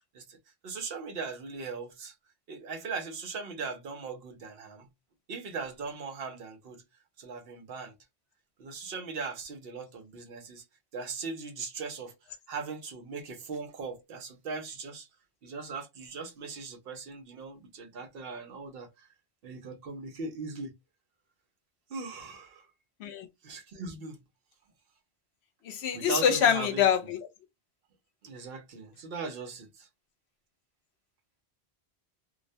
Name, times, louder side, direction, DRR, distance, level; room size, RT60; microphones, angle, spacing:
voice 1, 0.6-2.1 2.5-4.9 5.3-6.8 7.2-7.9 8.6-10.6 10.9-12.1 12.5-15.1 15.4-19.1 19.4-20.7 21.9-22.7 23.4-24.2 25.9-26.9 28.2-29.9, right 4 dB, 65° right, 0.8 m, -39 dB
voice 2, 25.7-27.2, left 8 dB, 80° left, 0.9 m, -25 dB
2.3 x 2.1 x 2.6 m
omnidirectional pair, 1.1 m